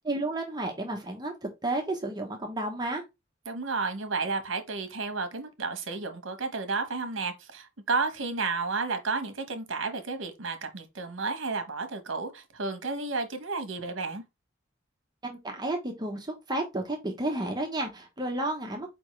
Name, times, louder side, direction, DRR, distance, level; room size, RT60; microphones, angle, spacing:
voice 1, 0.0-3.0 15.2-18.9, right 1 dB, 20° right, 0.9 m, -32 dB
voice 2, 3.5-14.2, right 4 dB, 75° right, 1.0 m, -32 dB
4.8 x 3.5 x 3.1 m
head